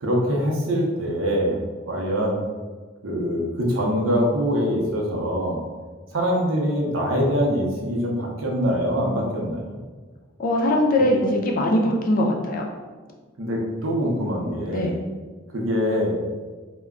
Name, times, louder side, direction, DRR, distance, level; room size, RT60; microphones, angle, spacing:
voice 1, 0.0-1.6 1.9-2.3 3.0-5.6 6.1-9.8 13.4-15.0 15.5-16.2, equal, 80° right, -2 dB, 0.6 m, -24 dB
voice 2, 10.4-12.6 14.7-14.9, left 1 dB, 45° left, 0 dB, 0.4 m, -21 dB
2.2 x 2.1 x 3.5 m, 1.4 s
head